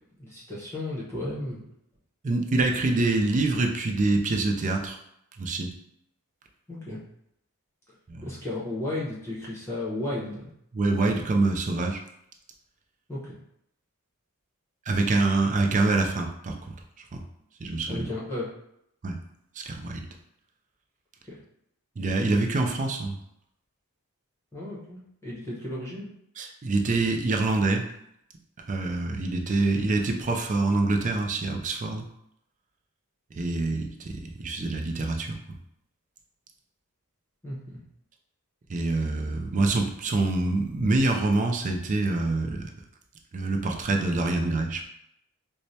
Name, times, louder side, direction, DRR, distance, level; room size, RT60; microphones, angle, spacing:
voice 1, 0.2-1.6 6.7-7.0 8.2-10.5 13.1-13.4 17.9-18.5 21.2-21.4 24.5-26.1 37.4-37.8, left 1 dB, 10° left, -7 dB, 0.9 m, -34 dB
voice 2, 2.2-5.0 5.4-5.7 8.1-8.3 10.7-12.0 14.9-16.8 17.1-17.2 17.6-18.1 19.0-19.2 19.6-20.1 22.0-23.2 26.4-27.9 28.7-32.1 33.3-35.4 38.7-42.7 43.3-44.8, right 2 dB, 35° right, 3 dB, 0.4 m, -25 dB
4.6 x 2.1 x 2.7 m, 0.77 s
head